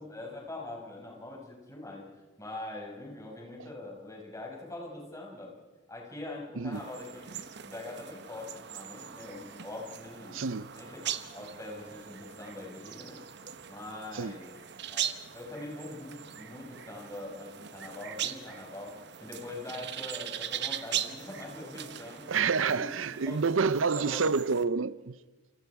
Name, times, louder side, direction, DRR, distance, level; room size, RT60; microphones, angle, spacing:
voice 1, 0.0-2.1 2.4-5.5 5.9-10.4 10.7-13.2 13.7-14.5 14.9-22.4 22.7-22.9 23.2-23.4 24.0-24.2, left 2 dB, 15° left, 6.1 m, -43 dB
sound 1, 6.7-24.7, right 9 dB, 60° right, 1.2 m, -40 dB
voice 2, 10.3-10.7 14.1-14.4 22.3-25.2, right 5 dB, 90° right, 0.6 m, -28 dB
29.0 x 28.0 x 4.8 m
head